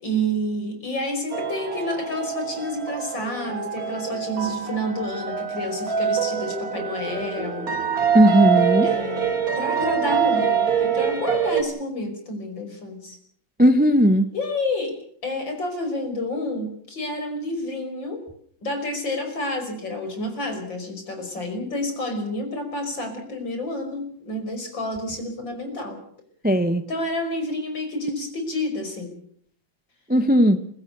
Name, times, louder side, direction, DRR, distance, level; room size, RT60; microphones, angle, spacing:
voice 1, 0.0-7.7 8.8-13.2 14.3-18.3 18.6-26.0 26.9-29.1, left 1 dB, 55° left, 5 dB, 6.1 m, -29 dB
sound 1, 1.3-11.6, right 7 dB, 40° right, 2.6 m, -25 dB
voice 2, 8.1-8.9 13.6-14.3 26.4-26.8 30.1-30.6, equal, 15° right, 11 dB, 0.4 m, -17 dB
27.0 x 17.0 x 6.9 m, 0.62 s
omnidirectional pair, 2.4 m